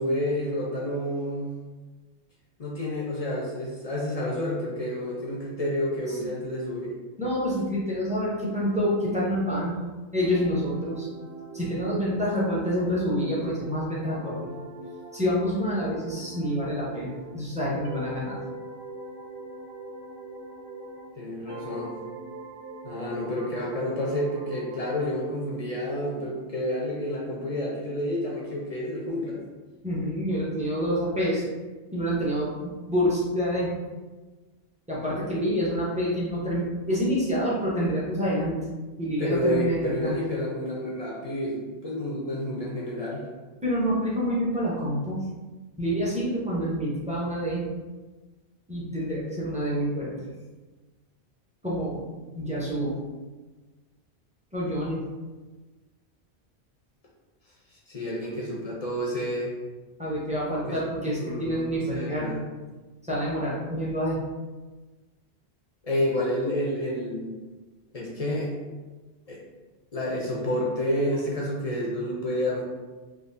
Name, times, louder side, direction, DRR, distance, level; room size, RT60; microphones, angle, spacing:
voice 1, 0.0-1.5 2.6-6.9 21.2-21.9 22.8-29.4 39.2-43.2 57.9-59.5 60.6-60.8 61.2-62.4 65.8-67.3 67.9-68.5 69.3-69.4 69.9-72.6, left 1 dB, 45° left, -4 dB, 0.6 m, -29 dB
voice 2, 7.2-9.7 10.1-11.1 11.5-14.6 15.1-18.4 29.8-31.4 31.9-33.7 34.9-38.6 39.0-40.2 43.6-45.2 45.8-47.7 48.7-50.1 51.6-52.9 54.5-55.0 60.0-62.4 63.1-64.2, equal, 10° right, -7 dB, 0.7 m, -27 dB
sound 1, 10.2-17.4 17.8-21.2 21.5-25.1, right 3 dB, 85° right, 0.9 m, -42 dB
3.6 x 2.4 x 2.5 m, 1.3 s
omnidirectional pair, 1.1 m